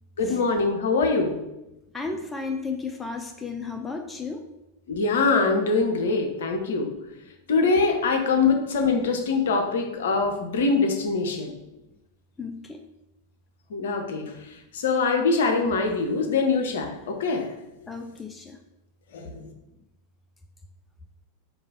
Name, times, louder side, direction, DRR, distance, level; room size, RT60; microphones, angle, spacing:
voice 1, 0.2-1.4 4.9-6.9 7.5-11.6 13.7-14.3 14.7-17.5 19.1-19.5, left 4 dB, 60° left, 4 dB, 0.6 m, -23 dB
voice 2, 1.9-4.4 12.4-12.8 17.9-18.6, left 4 dB, 10° left, 4 dB, 0.3 m, -33 dB
3.9 x 2.3 x 3.6 m, 0.94 s
figure-of-eight pair, 90°, 0 cm